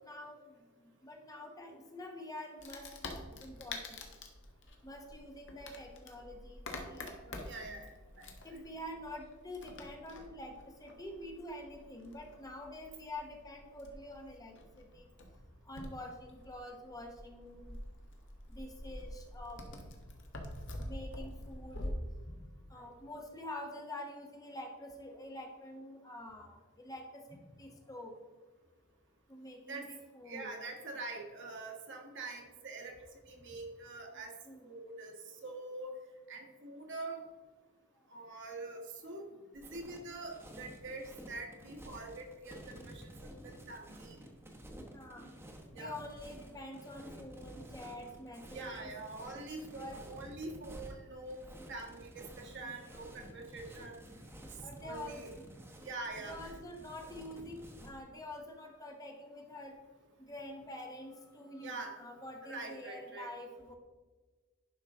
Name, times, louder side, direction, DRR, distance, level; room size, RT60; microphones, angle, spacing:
voice 1, 0.0-0.4 1.0-2.9 3.4-4.0 4.8-7.4 8.4-15.1 15.7-17.8 18.5-19.7 20.8-21.9 22.3-22.4 22.7-28.1 29.3-30.5 34.4-34.7 44.9-45.3 45.7-48.9 49.7-50.0 52.6-52.7 54.6-55.2 56.2-59.8 60.2-63.7, left 1 dB, 15° left, 2 dB, 0.9 m, -47 dB
Wood, 2.6-21.9, left 2 dB, 55° left, 1.3 m, -47 dB
voice 2, 7.4-8.3 29.7-29.9 30.2-32.9 33.3-34.3 34.6-35.1 35.4-35.9 36.3-37.2 38.1-44.2 45.7-46.0 48.5-51.4 51.7-54.0 54.8-55.3 55.8-56.5 61.6-62.0 62.4-63.3, right 3 dB, 55° right, 1 dB, 1.5 m, -45 dB
sound 1, 39.6-58.0, equal, 10° right, 1.1 m, -52 dB
11.0 x 5.6 x 3.6 m, 1.4 s
head